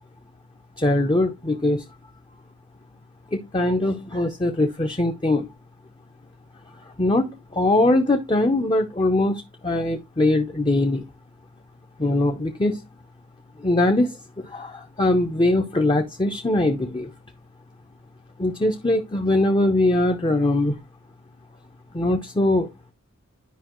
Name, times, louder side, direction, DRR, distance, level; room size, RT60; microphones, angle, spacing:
voice 1, 0.8-1.8 3.3-5.5 6.8-11.0 12.0-12.8 13.6-17.1 18.4-20.8 21.9-22.7, left 2 dB, 25° left, 0.7 m, -22 dB
10.0 x 5.2 x 3.0 m
head